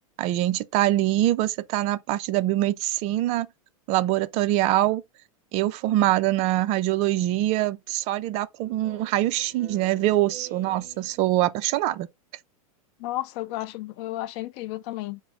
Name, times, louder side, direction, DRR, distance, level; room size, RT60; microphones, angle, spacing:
voice 1, 0.2-3.5 3.9-5.0 5.5-12.1, right 15 dB, 35° right, 0.4 m, -24 dB
Speech synthesizer, 8.6-11.7, right 5 dB, 10° right, 1.6 m, -48 dB
voice 2, 13.0-15.2, left 16 dB, 45° left, 0.4 m, -32 dB
3.6 x 2.0 x 3.7 m
hypercardioid pair, 130°, 19 cm